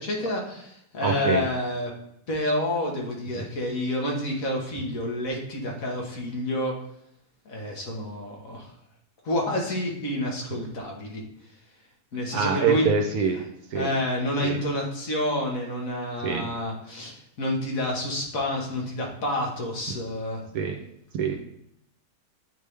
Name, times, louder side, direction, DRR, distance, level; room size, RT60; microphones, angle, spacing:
voice 1, 0.0-1.9 2.3-6.7 7.4-8.7 9.2-11.2 12.1-12.9 13.7-20.4, left 1 dB, 65° left, -1 dB, 1.7 m, -29 dB
voice 2, 1.0-1.4 3.3-3.4 12.3-13.4 13.7-13.9 14.4-14.6 16.2-16.4 20.5-20.7 21.1-21.4, right 6 dB, 75° right, 3 dB, 1.2 m, -25 dB
8.9 x 3.5 x 3.3 m, 0.75 s
omnidirectional pair, 1.6 m